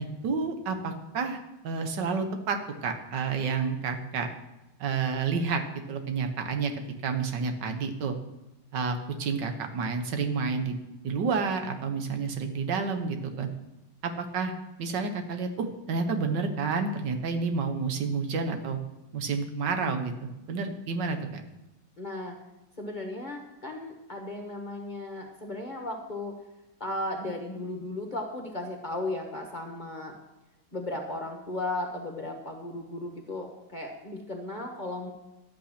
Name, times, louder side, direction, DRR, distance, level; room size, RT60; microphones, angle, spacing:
voice 1, 0.0-4.3 4.8-5.6 5.9-6.7 7.0-8.2 8.7-10.8 11.0-13.5 14.0-14.5 14.8-18.8 19.1-20.1 20.5-21.4, right 5 dB, 85° right, 6 dB, 1.8 m, -30 dB
voice 2, 22.0-22.4 22.8-26.4 26.8-30.1 30.7-35.1, left 2 dB, 30° left, 2 dB, 1.2 m, -35 dB
11.5 x 8.6 x 5.9 m, 0.95 s
omnidirectional pair, 1.9 m